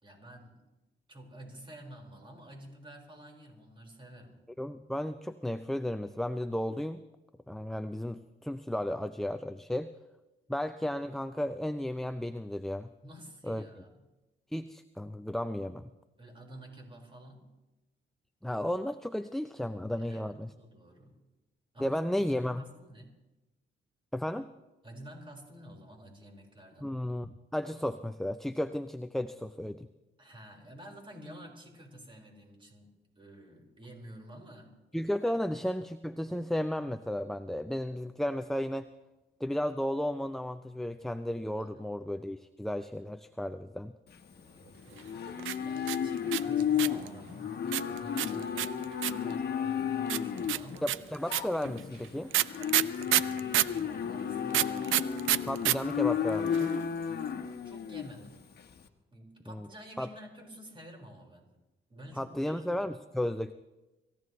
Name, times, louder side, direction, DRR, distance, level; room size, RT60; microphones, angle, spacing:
voice 1, 0.0-0.6 1.1-4.4 13.0-14.0 16.2-17.5 19.9-21.2 21.7-23.1 24.8-27.0 30.2-32.9 33.1-34.8 35.2-35.3 41.6-41.9 44.3-48.8 49.1-50.9 52.6-55.1 57.6-58.4 59.1-61.5 61.9-62.9, right 1 dB, 25° right, 0 dB, 5.0 m, -50 dB
voice 2, 4.6-7.0 7.5-9.9 10.5-12.9 13.4-13.6 14.5-15.9 18.4-20.5 21.8-22.6 24.1-24.5 26.8-29.9 34.9-38.9 39.4-43.9 50.8-52.3 55.5-56.7 59.5-59.7 60.0-60.1 62.2-63.5, left 1 dB, ahead, 10 dB, 0.5 m, -34 dB
Livestock farm animals working animals, 44.1-58.8, left 8 dB, 55° left, 1.3 m, -33 dB
sound 1, 45.4-47.1 47.7-49.3 50.1-53.8 54.5-55.8 56.0-56.1 56.3-56.8, right 14 dB, 80° right, 0.5 m, -28 dB
25.5 x 15.5 x 3.2 m, 1.0 s
cardioid pair, 90°, 20 cm